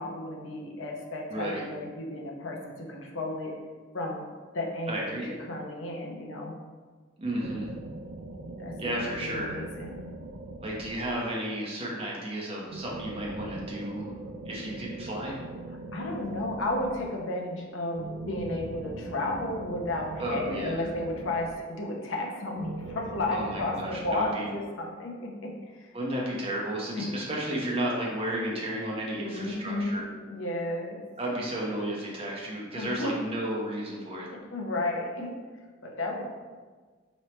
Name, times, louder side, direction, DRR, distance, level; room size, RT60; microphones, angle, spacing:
voice 1, 0.0-3.5 3.9-4.3 4.5-5.1 5.5-6.5 8.6-8.9 9.2-10.0 15.7-18.0 18.3-25.9 27.0-27.1 29.1-31.0 32.7-33.1 34.3-35.3 35.8-36.3, left 2 dB, 70° left, 0 dB, 0.7 m, -33 dB
voice 2, 1.3-1.6 4.9-5.3 7.2-7.7 8.8-9.6 10.6-14.1 14.5-15.4 20.2-20.8 23.3-24.5 25.9-30.1 31.2-34.3, right 1 dB, 30° right, -4 dB, 0.8 m, -33 dB
sound 1, 7.4-11.6 12.7-17.3 17.9-22.0 22.6-24.2, right 2 dB, 65° right, 0.4 m, -41 dB
4.5 x 3.1 x 3.1 m, 1.4 s
head